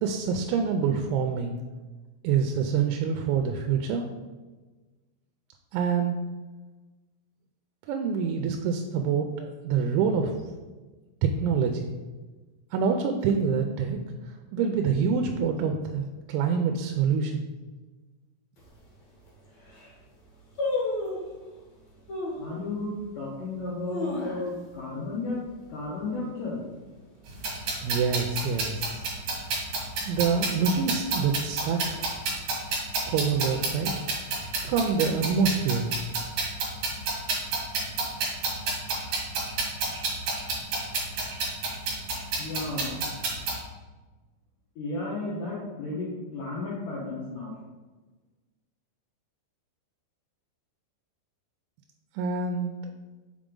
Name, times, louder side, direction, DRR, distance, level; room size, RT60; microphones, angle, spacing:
voice 1, 0.0-1.6 2.2-4.1 5.7-6.2 7.9-10.3 11.2-11.9 12.7-14.0 14.5-17.4 27.8-29.0 30.1-32.0 33.1-33.9 34.6-36.0 52.2-52.7, right 6 dB, 90° right, 4 dB, 2.9 m, -26 dB
sound 1, 18.6-18.7 19.3-19.4 19.6-20.0 20.6-21.3 22.1-22.5 23.0-23.1 23.6-24.8 25.1-25.2 25.5-25.9 26.3-26.6 27.2-28.0 28.3-28.4, left 2 dB, 55° left, 2.0 m, -31 dB
voice 2, 22.4-25.4 25.7-26.6 42.4-43.1 44.8-47.6, left 3 dB, 75° left, -6 dB, 2.1 m, -33 dB
sound 2, 27.3-43.6, right 3 dB, 55° right, 2.4 m, -30 dB
7.2 x 5.0 x 3.7 m, 1.2 s
omnidirectional pair, 5.3 m